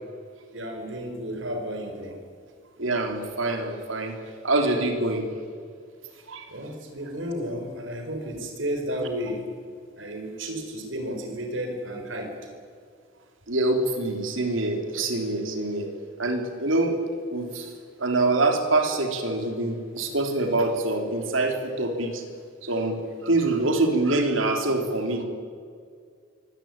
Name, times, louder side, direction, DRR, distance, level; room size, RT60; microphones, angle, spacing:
voice 1, 0.5-2.2 6.5-9.5 10.0-12.3, equal, 75° right, 4 dB, 4.4 m, -32 dB
voice 2, 2.8-4.2 4.4-5.2 6.3-6.4 13.5-15.9 16.2-17.0 17.3-17.7 18.0-22.2 22.6-25.2, right 2 dB, 90° right, 5 dB, 3.6 m, -25 dB
23.5 x 18.0 x 9.0 m, 2.2 s
head